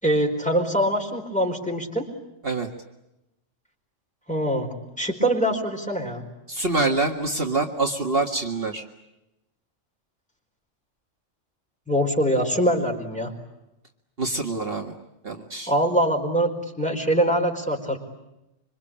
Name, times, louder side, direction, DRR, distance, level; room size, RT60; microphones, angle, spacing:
voice 1, 0.0-2.1 4.3-4.7 5.0-6.2 11.9-13.3 15.7-18.0, right 1 dB, 5° left, 2 dB, 4.5 m, -23 dB
voice 2, 6.5-8.8 14.2-14.9 15.2-15.7, right 3 dB, 50° right, 2 dB, 2.1 m, -25 dB
26.0 x 25.0 x 8.8 m, 0.92 s
omnidirectional pair, 1.3 m